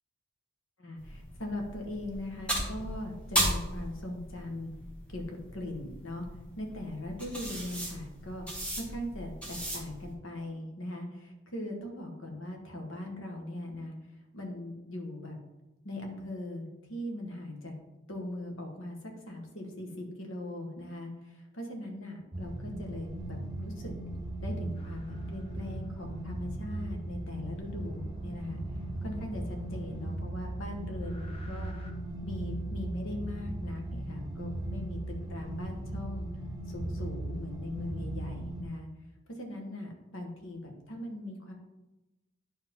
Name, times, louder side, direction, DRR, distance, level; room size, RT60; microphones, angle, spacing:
voice 1, 0.8-4.7 5.1-6.3 6.6-8.4 8.7-13.9 14.3-15.4 15.8-17.8 18.1-23.9 24.4-28.6 29.0-31.7 32.2-36.3 36.7-38.9 39.3-41.5, left 1 dB, 70° left, 2 dB, 1.5 m, -40 dB
sound 1, 1.0-10.1, right 1 dB, 5° left, 1.3 m, -36 dB
sound 2, 22.3-38.6, right 1 dB, 20° right, 0.6 m, -38 dB
sound 3, 24.7-26.2 27.6-31.9, left 1 dB, 25° left, 1.0 m, -52 dB
10.0 x 4.7 x 3.7 m, 1.0 s
head